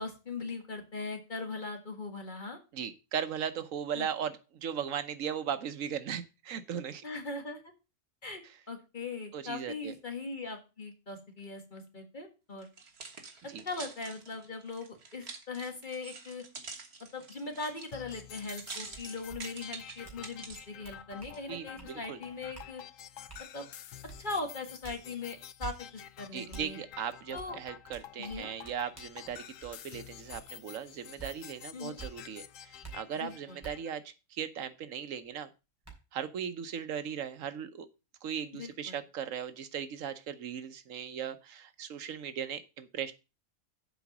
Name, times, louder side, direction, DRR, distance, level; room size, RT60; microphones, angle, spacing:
voice 1, 0.0-2.6 3.9-4.1 7.0-7.7 8.2-12.7 13.6-16.4 17.1-22.8 23.5-23.7 24.2-26.8 27.3-27.6 28.2-28.5 31.7-32.0 33.2-33.6 38.5-39.0, left 3 dB, 40° left, 4 dB, 1.8 m, -40 dB
voice 2, 2.7-7.0 9.3-10.0 13.5-13.6 21.5-22.2 26.3-35.5 36.1-37.9 38.2-43.1, right 8 dB, 85° right, 12 dB, 1.2 m, -38 dB
sound 1, 12.6-20.7 21.2-21.4, right 4 dB, 55° right, 1.7 m, -46 dB
sound 2, 17.9-33.9, left 10 dB, 85° left, 1.1 m, -49 dB
sound 3, 18.9-19.0 19.3-19.4 20.0-20.2 20.5-21.3 21.8-21.9 22.5-22.7 23.3-23.4 24.1-24.2 24.8-25.0 25.6-25.7 26.5-26.6 27.4-27.5 27.9-29.7 30.3-30.4 31.2-31.3 32.0-32.1 32.8-32.9 33.6-33.7 35.2-35.3 35.8-35.9, right 6 dB, 10° right, 3.3 m, -46 dB
7.7 x 5.0 x 7.1 m, 0.30 s
omnidirectional pair, 1.3 m